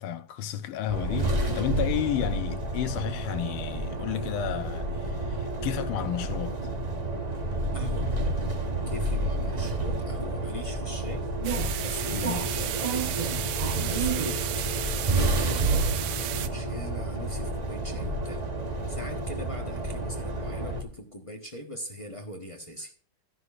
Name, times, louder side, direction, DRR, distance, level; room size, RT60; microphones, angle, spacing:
voice 1, 0.0-6.6 12.1-12.5, left 11 dB, 80° left, 1.6 m, -32 dB
sound 1, 0.9-20.8, right 2 dB, 35° right, 0.6 m, -30 dB
sound 2, 2.7-12.3, left 3 dB, 10° left, 1.7 m, -47 dB
voice 2, 7.7-8.1 8.9-11.3 11.8-14.7 15.1-18.4 18.9-22.9, left 1 dB, 25° left, 0.6 m, -41 dB
sound 3, 11.4-16.5, right 12 dB, 70° right, 1.0 m, -34 dB
13.5 x 11.0 x 2.5 m
omnidirectional pair, 2.4 m